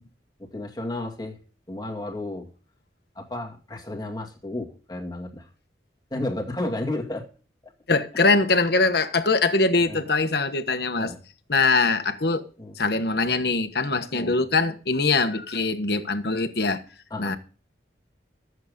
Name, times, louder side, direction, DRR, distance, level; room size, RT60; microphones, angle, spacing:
voice 1, 0.4-1.4 1.7-2.5 3.2-5.5 6.1-7.3 9.9-10.0 11.0-11.2 12.6-12.7 14.1-14.4 17.1-17.4, left 1 dB, 25° left, 2.1 m, -32 dB
voice 2, 7.9-11.1 11.5-12.5 12.7-16.8 17.2-17.4, left 3 dB, 60° left, 1.3 m, -22 dB
13.5 x 8.1 x 5.3 m
head